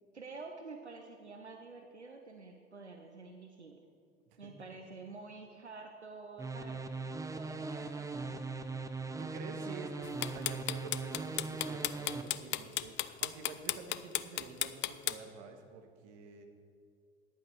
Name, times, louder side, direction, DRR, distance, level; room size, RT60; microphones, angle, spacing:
voice 1, 0.0-3.8 4.4-6.8 7.3-8.5, right 3 dB, 90° right, 4 dB, 0.7 m, -49 dB
sound 1, 6.4-12.2, right 3 dB, 10° right, 0.8 m, -40 dB
voice 2, 8.9-16.5, right 5 dB, 55° right, 5 dB, 1.6 m, -49 dB
sound 2, 10.0-15.1, left 15 dB, 35° left, 0.5 m, -33 dB
14.5 x 10.5 x 4.6 m, 2.3 s
figure-of-eight pair, 65°, 33 cm